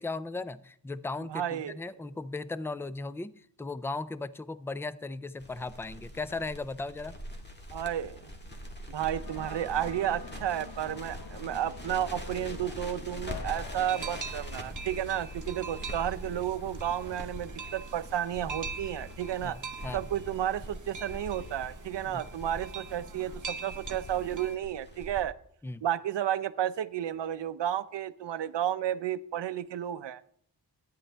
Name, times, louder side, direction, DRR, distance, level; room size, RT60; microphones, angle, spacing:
voice 1, 0.0-7.1 19.4-20.1 22.1-22.2 25.6-25.9, left 3 dB, 5° left, 15 dB, 0.3 m, -37 dB
voice 2, 1.3-1.8 7.7-8.2 8.9-19.6 19.9-25.3 25.8-30.2, right 11 dB, 75° right, 15 dB, 0.6 m, -32 dB
Crackle, 5.4-25.2, equal, 25° left, 1.6 m, -43 dB
sound 1, 9.2-14.3, left 4 dB, 60° left, 1.6 m, -45 dB
sound 2, 13.8-24.6, right 5 dB, 45° right, 0.8 m, -44 dB
13.5 x 9.8 x 3.4 m, 0.65 s
wide cardioid pair, 90°, 44 cm